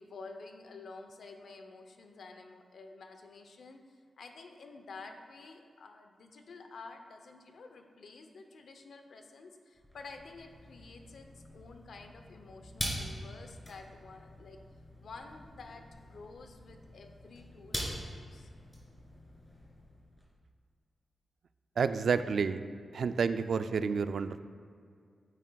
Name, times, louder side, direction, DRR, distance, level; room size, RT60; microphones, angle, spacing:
voice 1, 0.0-14.6 15.0-18.5, left 3 dB, 75° left, 5 dB, 0.7 m, -50 dB
sound 1, 9.8-20.3, equal, 15° left, 2.0 m, -44 dB
voice 2, 21.8-22.6 22.9-24.4, right 5 dB, 70° right, 11 dB, 0.3 m, -30 dB
9.1 x 8.4 x 2.3 m, 2.2 s
wide cardioid pair, 120°, 0 cm